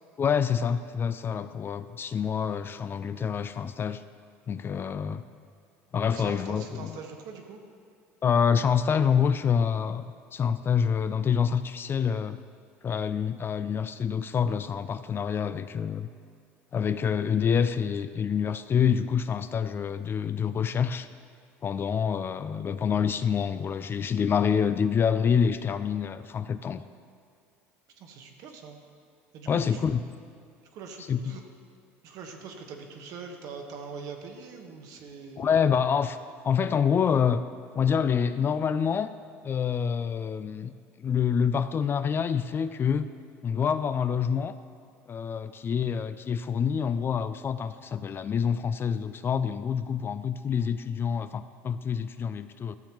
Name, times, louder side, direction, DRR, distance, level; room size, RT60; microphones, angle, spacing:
voice 1, 0.2-4.0 4.5-5.2 5.9-7.0 8.2-12.4 12.8-16.1 16.7-21.1 21.6-26.8 29.5-30.0 31.1-31.4 35.4-36.2 36.4-37.4 37.7-39.1 39.4-40.7 41.0-43.1 43.4-44.6 45.1-52.8, left 7 dB, 35° left, 12 dB, 0.3 m, -27 dB
voice 2, 6.1-7.6 28.0-28.8 29.3-29.9 30.7-31.4 32.0-35.5 45.7-45.9, right 5 dB, 65° right, 3 dB, 1.1 m, -43 dB
13.0 x 7.0 x 3.0 m, 2.3 s
hypercardioid pair, 80°, 7 cm